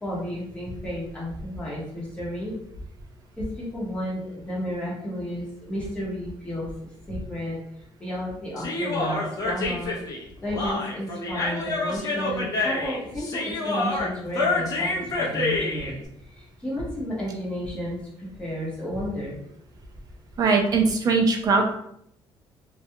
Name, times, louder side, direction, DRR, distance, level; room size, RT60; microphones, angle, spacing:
voice 1, 0.0-2.6 3.4-6.7 7.1-7.6 8.0-9.9 10.4-19.4, equal, 10° left, -6 dB, 0.9 m, -32 dB
Human voice, 8.6-15.9, left 2 dB, 40° left, 0.6 m, -27 dB
voice 2, 20.4-21.7, right 4 dB, 40° right, 2 dB, 0.5 m, -21 dB
2.3 x 2.2 x 2.7 m, 0.71 s
cardioid pair, 140°, 10 cm